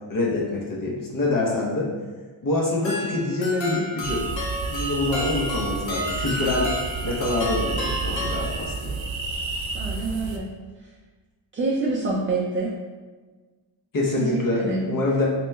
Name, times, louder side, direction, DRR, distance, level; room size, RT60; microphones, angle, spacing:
voice 1, 0.1-1.9 2.4-4.2 4.7-6.7 7.0-9.0 13.9-15.3, left 2 dB, 45° left, -4 dB, 0.8 m, -25 dB
sound 1, 2.8-9.0, equal, 75° left, 1.0 m, -32 dB
sound 2, 4.0-10.4, right 3 dB, 80° right, 0.6 m, -30 dB
voice 2, 9.7-10.5 11.5-12.7 14.2-14.9, right 3 dB, 30° right, -3 dB, 0.3 m, -26 dB
3.3 x 3.0 x 3.2 m, 1.4 s
wide cardioid pair, 140°, 46 cm